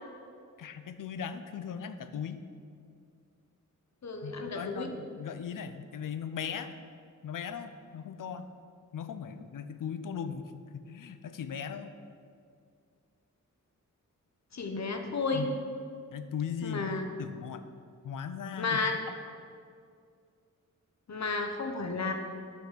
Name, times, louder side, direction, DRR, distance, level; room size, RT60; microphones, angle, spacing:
voice 1, 0.6-2.4 4.2-6.7 7.2-8.5 8.9-11.9 15.3-15.5 16.1-17.7 18.0-18.8, left 7 dB, 85° left, 11 dB, 0.6 m, -38 dB
voice 2, 4.0-4.9 14.5-15.5 16.6-17.0 18.6-19.0 21.1-22.1, left 4 dB, 60° left, 5 dB, 1.0 m, -32 dB
8.1 x 6.2 x 6.0 m, 2.3 s
wide cardioid pair, 85°, 31 cm